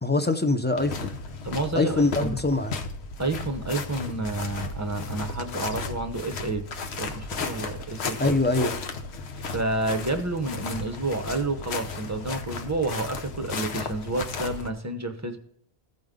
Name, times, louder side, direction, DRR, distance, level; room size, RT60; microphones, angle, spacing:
voice 1, 0.0-1.2 1.7-2.8 8.2-8.8, left 2 dB, 15° left, 8 dB, 0.5 m, -24 dB
sound 1, 0.8-14.7, left 4 dB, 70° left, 1.1 m, -35 dB
voice 2, 1.4-2.4 3.2-6.7 7.0-8.4 9.5-15.4, right 2 dB, 15° right, 7 dB, 0.8 m, -30 dB
15.0 x 5.3 x 3.7 m, 0.68 s
omnidirectional pair, 1.2 m